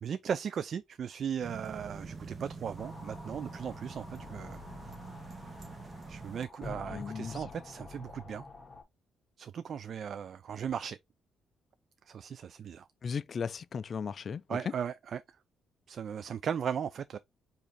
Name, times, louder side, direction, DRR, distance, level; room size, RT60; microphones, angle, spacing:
voice 1, 0.0-4.6 6.1-8.5 9.4-11.0 12.1-12.9 14.5-15.2 15.9-17.2, right 8 dB, 55° right, 0.3 m, -37 dB
sound 1, 1.4-6.4, right 4 dB, 35° right, 0.8 m, -46 dB
sound 2, 2.8-8.8, left 3 dB, 30° left, 1.5 m, -47 dB
voice 2, 6.9-7.4 13.0-14.6, left 6 dB, 50° left, 0.3 m, -37 dB
5.0 x 2.6 x 4.0 m
cardioid pair, 90°, 0 cm